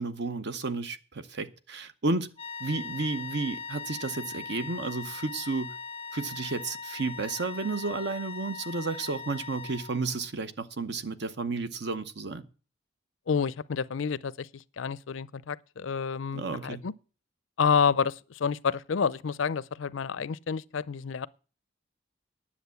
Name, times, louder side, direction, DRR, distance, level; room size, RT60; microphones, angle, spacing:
voice 1, 0.0-2.3 2.6-5.8 6.1-12.5 16.3-16.8, right 3 dB, 60° right, 0.9 m, -32 dB
sound 1, 2.4-10.2, left 4 dB, 30° left, 0.5 m, -40 dB
voice 2, 13.3-16.9 17.6-21.3, left 6 dB, 80° left, 0.5 m, -29 dB
10.0 x 7.4 x 8.1 m
head